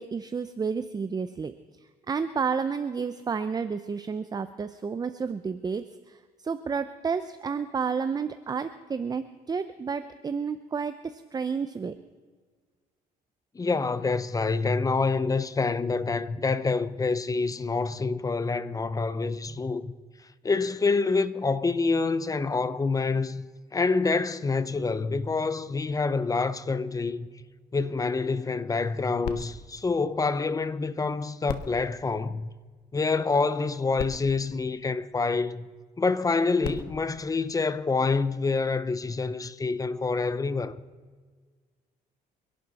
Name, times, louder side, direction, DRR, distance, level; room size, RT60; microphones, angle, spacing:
voice 1, 0.0-11.9, right 5 dB, 25° right, 0.6 m, -31 dB
voice 2, 13.5-19.9 20.4-23.5 23.7-27.3 27.7-32.5 32.9-35.7 36.0-40.7, left 4 dB, 20° left, 0.8 m, -27 dB
sound 1, 29.2-30.9 31.4-33.0 33.7-33.8 34.0-35.5 36.4-38.2 38.9-39.0, left 8 dB, 75° left, 1.5 m, -42 dB
29.5 x 11.5 x 4.2 m
cardioid pair, 110°, 17 cm